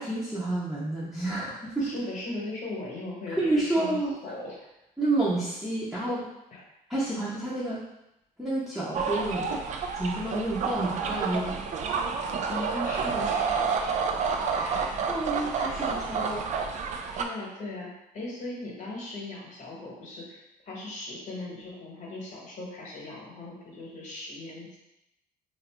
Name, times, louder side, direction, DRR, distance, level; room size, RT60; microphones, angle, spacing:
voice 1, 0.0-1.9 3.3-4.2 5.0-6.2 6.9-7.8 8.4-9.5 10.0-11.6 14.5-16.5, right 2 dB, 5° right, -9 dB, 0.7 m, -29 dB
voice 2, 1.8-4.0 4.2-4.6 6.5-6.6 12.5-13.7 17.1-17.9 18.1-24.8, left 2 dB, 45° left, -3 dB, 1.1 m, -38 dB
sound 1, 8.9-17.2, right 5 dB, 45° right, 0.4 m, -29 dB
2.6 x 2.5 x 3.4 m, 0.87 s
cardioid pair, 110°, 17 cm